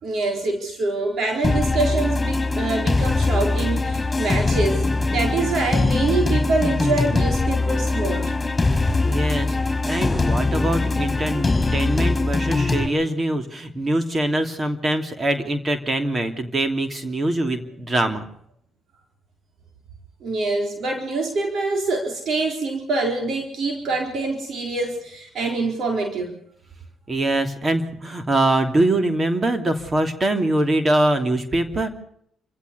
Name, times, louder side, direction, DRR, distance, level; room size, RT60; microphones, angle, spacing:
voice 1, 0.0-4.8 5.1-8.3 20.2-26.3, right 3 dB, 65° right, 3 dB, 4.3 m, -25 dB
sound 1, 1.4-12.9, left 3 dB, 20° left, 5.2 m, -22 dB
voice 2, 9.0-9.6 9.8-18.3 27.1-31.9, right 1 dB, 35° right, 7 dB, 2.9 m, -23 dB
27.5 x 16.0 x 7.0 m, 0.71 s
cardioid pair, 75°, 0 cm